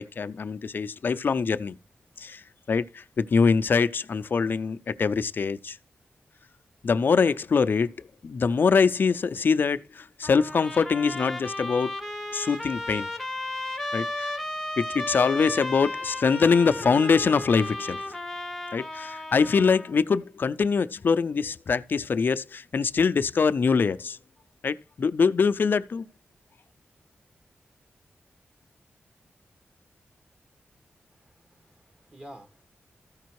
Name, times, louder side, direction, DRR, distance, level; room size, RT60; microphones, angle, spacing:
voice 1, 0.0-1.7 2.2-2.4 2.7-5.8 6.8-11.9 12.3-13.1 13.8-14.3 14.8-18.0 18.7-24.2 24.6-26.0, left 5 dB, 50° left, 0.5 m, -24 dB
Trumpet, 10.2-19.9, left 1 dB, ahead, 0.9 m, -34 dB
voice 2, 31.2-32.6, equal, 25° right, 1.5 m, -49 dB
14.0 x 5.1 x 4.7 m
wide cardioid pair, 170°, 4 cm